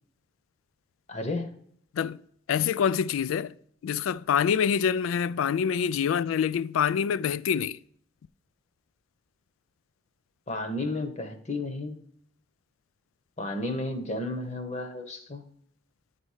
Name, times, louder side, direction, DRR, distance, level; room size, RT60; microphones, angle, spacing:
voice 1, 1.1-1.5 10.5-12.0 13.4-15.4, left 2 dB, 35° left, 0.9 m, -32 dB
voice 2, 2.5-3.5 3.8-7.8, left 7 dB, 90° left, 0.3 m, -26 dB
10.0 x 4.2 x 4.8 m
head